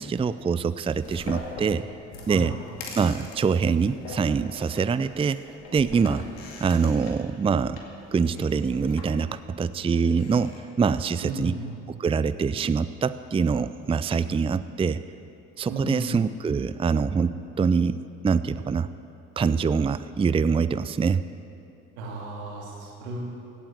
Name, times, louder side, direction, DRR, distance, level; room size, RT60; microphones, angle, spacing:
voice 1, 0.0-1.8 2.3-2.6 3.0-5.4 5.7-6.2 6.6-7.8 8.1-11.5 11.9-15.0 15.6-18.0 18.2-18.9 19.4-21.2, right 5 dB, 20° right, 14 dB, 0.4 m, -24 dB
sound 1, 0.8-10.6, left 2 dB, 80° left, 2.4 m, -42 dB
voice 2, 11.2-11.7 15.7-16.2 22.0-23.2, right 2 dB, 90° right, -2 dB, 2.9 m, -34 dB
16.5 x 8.7 x 7.7 m, 2.7 s
hypercardioid pair, 60°, 32 cm